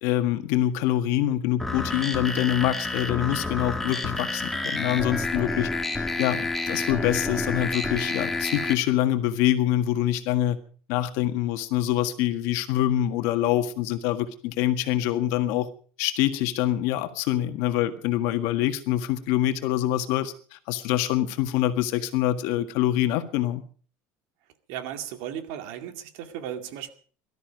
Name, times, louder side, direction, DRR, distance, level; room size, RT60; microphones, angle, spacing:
voice 1, 0.0-10.6 10.9-15.7 16.0-23.6, left 13 dB, 65° left, 8 dB, 1.7 m, -25 dB
sound 1, 1.6-8.7, left 2 dB, 5° left, 1.6 m, -29 dB
voice 2, 24.7-26.9, right 10 dB, 70° right, 7 dB, 2.3 m, -35 dB
18.5 x 13.0 x 5.2 m, 0.43 s
cardioid pair, 160°, 5 cm